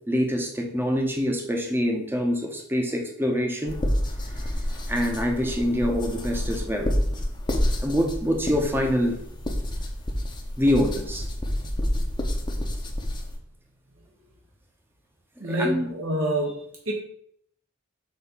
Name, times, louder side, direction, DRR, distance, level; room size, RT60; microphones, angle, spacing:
voice 1, 0.1-3.8 4.9-6.9 7.8-9.2 10.6-11.2 15.6-15.9, equal, 10° right, 2 dB, 0.8 m, -25 dB
sound 1, 3.7-13.4, equal, 20° left, 0.8 m, -28 dB
voice 2, 15.4-16.9, equal, 75° right, 0 dB, 1.3 m, -27 dB
6.2 x 3.0 x 5.5 m, 0.67 s
head